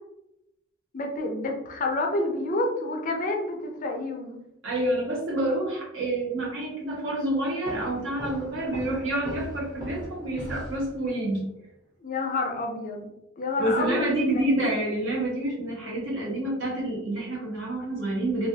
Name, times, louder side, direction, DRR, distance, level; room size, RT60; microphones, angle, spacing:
voice 1, 0.9-4.4 12.0-13.1 13.4-14.4, left 2 dB, 40° left, 2 dB, 0.5 m, -29 dB
voice 2, 4.6-11.5 13.6-18.5, right 1 dB, 65° right, -4 dB, 1.1 m, -28 dB
sound 1, 7.6-11.3, right 1 dB, 40° right, 1.1 m, -39 dB
3.1 x 2.4 x 2.7 m, 0.87 s
head